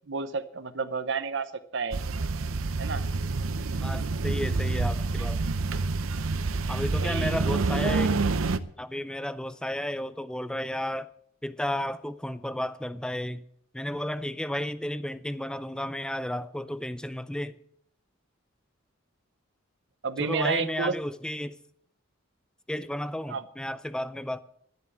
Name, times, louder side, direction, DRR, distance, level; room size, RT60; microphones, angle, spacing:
voice 1, 0.1-2.0 2.8-3.0 7.0-7.4 20.0-21.0 23.3-23.4, right 5 dB, 60° right, 0.9 m, -31 dB
sound 1, 1.9-8.6, right 3 dB, 85° right, 0.7 m, -28 dB
voice 2, 3.8-5.4 6.7-8.2 8.8-11.1 11.4-13.4 13.7-17.6 20.2-21.5 22.7-24.4, left 1 dB, 5° left, 0.5 m, -33 dB
11.5 x 10.5 x 7.3 m
head